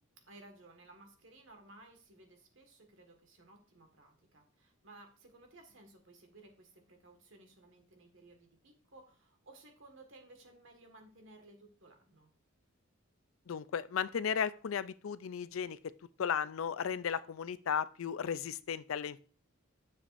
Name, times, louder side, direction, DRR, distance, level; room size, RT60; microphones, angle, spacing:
voice 1, 0.3-12.3, right 2 dB, 75° right, 4 dB, 1.7 m, -58 dB
voice 2, 13.5-15.8 16.2-19.2, left 7 dB, 85° left, 15 dB, 0.4 m, -35 dB
10.0 x 6.8 x 2.6 m, 0.40 s
head